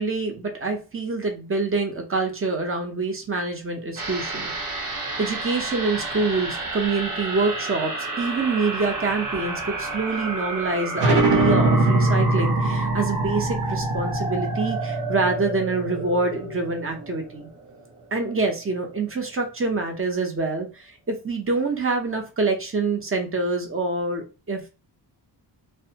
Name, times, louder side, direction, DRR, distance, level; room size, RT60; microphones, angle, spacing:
voice 1, 0.0-4.5 5.2-17.5 18.1-24.7, right 3 dB, 30° right, 3 dB, 0.7 m, -26 dB
sound 1, 4.0-18.6 18.9-19.0, right 2 dB, 45° right, 1.1 m, -31 dB
sound 2, 11.0-16.2, right 2 dB, 75° right, 0.7 m, -22 dB
2.6 x 2.2 x 2.8 m, 0.31 s
wide cardioid pair, 110°, 43 cm